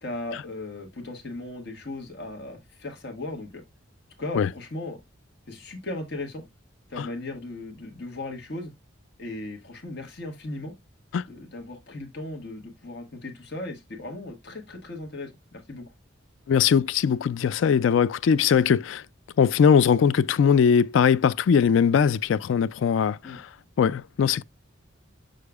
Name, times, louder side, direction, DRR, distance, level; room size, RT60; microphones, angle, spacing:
voice 1, 0.0-3.6 4.2-5.0 5.5-6.4 6.9-8.7 9.2-10.7 11.3-15.9 23.2-23.4, left 2 dB, 55° left, 1.5 m, -37 dB
voice 2, 16.5-19.0 19.4-23.5 23.8-24.4, left 7 dB, 70° left, 0.3 m, -20 dB
7.6 x 6.6 x 2.3 m
head